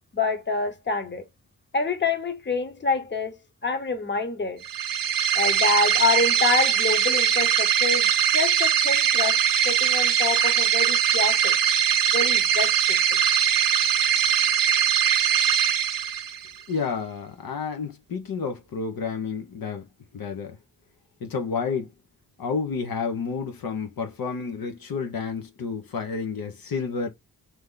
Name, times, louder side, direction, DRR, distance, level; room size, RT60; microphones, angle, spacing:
voice 1, 0.1-1.2 1.7-4.6 5.3-9.4 9.6-11.6 12.1-13.2, left 4 dB, 30° left, 1.0 m, -27 dB
sound 1, 4.6-16.6, right 8 dB, 70° right, 0.6 m, -21 dB
voice 2, 16.7-19.9 20.1-20.6 21.2-21.9 22.4-27.1, left 5 dB, 80° left, 1.0 m, -30 dB
3.4 x 3.0 x 3.8 m
wide cardioid pair, 110°, 35 cm